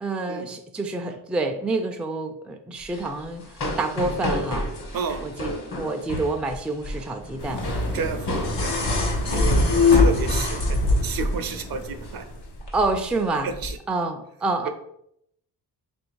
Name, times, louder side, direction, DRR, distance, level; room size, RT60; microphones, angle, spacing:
voice 1, 0.0-4.7 5.2-8.0 9.5-9.8 12.7-13.5 13.9-14.7, right 3 dB, 5° right, 5 dB, 0.3 m, -28 dB
sound 1, 2.8-10.9 11.2-11.4 11.8-12.1 12.6-13.7, left 1 dB, 55° left, 1.3 m, -32 dB
voice 2, 4.9-5.2 7.9-12.3 13.4-13.8 14.6-14.7, right 5 dB, 55° right, 9 dB, 0.5 m, -32 dB
sound 2, 7.4-12.6, left 1 dB, 70° left, 0.8 m, -35 dB
sound 3, 7.6-11.3 12.6-12.7, left 3 dB, 90° left, 1.1 m, -21 dB
3.1 x 2.6 x 4.4 m, 0.73 s
cardioid pair, 80°, 42 cm